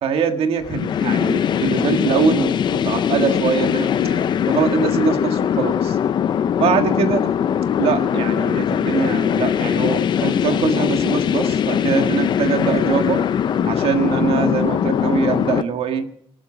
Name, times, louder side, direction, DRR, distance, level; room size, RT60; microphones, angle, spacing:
voice 1, 0.0-6.0 6.6-7.3 7.8-13.2 13.6-16.0, right 6 dB, 75° right, 7 dB, 1.7 m, -22 dB
sound 1, 0.6-15.6, left 8 dB, 50° left, 0.5 m, -20 dB
19.0 x 12.0 x 5.0 m, 0.62 s
wide cardioid pair, 175°, 10 cm